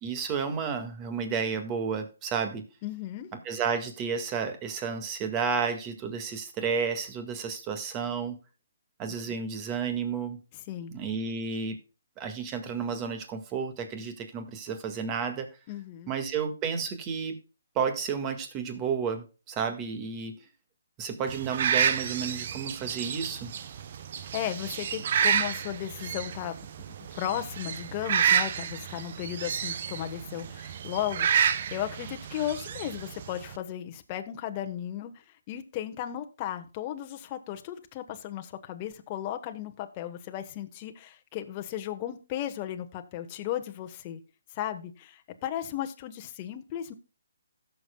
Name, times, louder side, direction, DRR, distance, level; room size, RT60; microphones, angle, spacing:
voice 1, 0.0-2.6 3.5-8.4 9.0-10.4 10.9-11.8 12.2-15.5 16.1-17.4 17.8-20.4 21.0-23.5, right 6 dB, 25° right, 7 dB, 1.8 m, -31 dB
voice 2, 2.8-3.3 10.5-10.9 15.7-16.1 24.3-26.6 27.0-44.2 44.5-46.9, left 11 dB, 30° left, 6 dB, 1.2 m, -35 dB
sound 1, 21.3-33.6, right 8 dB, 50° right, 0.8 m, -30 dB
16.5 x 7.0 x 2.3 m, 0.33 s
hypercardioid pair, 150°, 0 cm